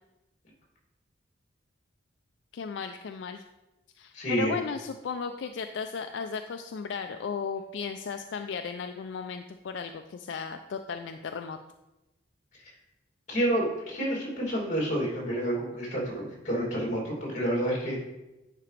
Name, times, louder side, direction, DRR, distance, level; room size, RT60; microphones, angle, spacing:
voice 1, 2.5-3.4 4.0-11.6, left 5 dB, 70° left, 7 dB, 0.3 m, -35 dB
voice 2, 4.1-4.5 13.3-18.0, right 1 dB, 40° left, -3 dB, 2.6 m, -29 dB
9.9 x 4.8 x 3.3 m, 1.0 s
head